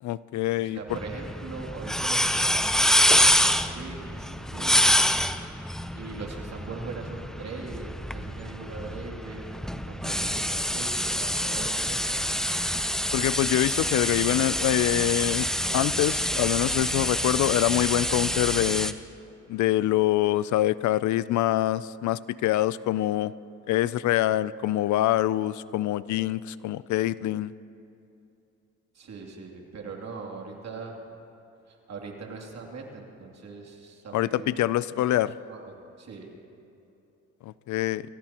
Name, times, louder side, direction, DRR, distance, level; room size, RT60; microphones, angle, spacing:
voice 1, 0.0-0.8 13.1-15.5 15.7-18.9 19.5-23.3 23.7-27.5 34.1-35.3 37.4-38.0, left 14 dB, 70° left, 18 dB, 0.5 m, -25 dB
voice 2, 0.6-5.0 5.9-12.3 28.9-31.0 31.7-34.5 35.1-35.2 35.5-36.3, right 4 dB, 60° right, 0 dB, 2.8 m, -41 dB
sound 1, 0.9-18.9, equal, ahead, 0.6 m, -26 dB
26.0 x 17.5 x 3.0 m, 2.8 s
cardioid pair, 90°, 30 cm